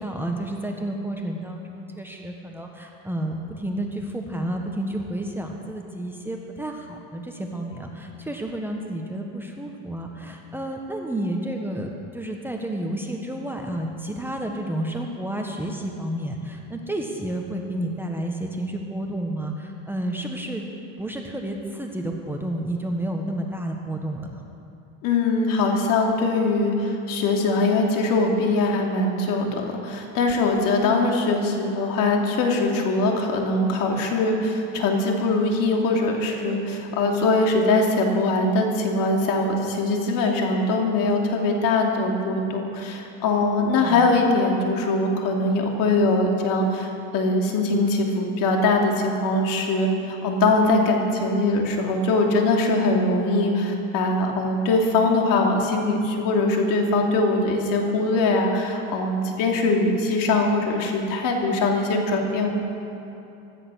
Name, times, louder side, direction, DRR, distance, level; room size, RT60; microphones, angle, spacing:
voice 1, 0.0-20.6 21.0-24.3 30.8-30.9 43.8-44.2, right 1 dB, 5° right, 1 dB, 1.3 m, -31 dB
voice 2, 25.0-62.5, left 2 dB, 55° left, 1 dB, 2.8 m, -22 dB
16.0 x 13.0 x 6.4 m, 2.8 s
supercardioid pair, 115°, 39 cm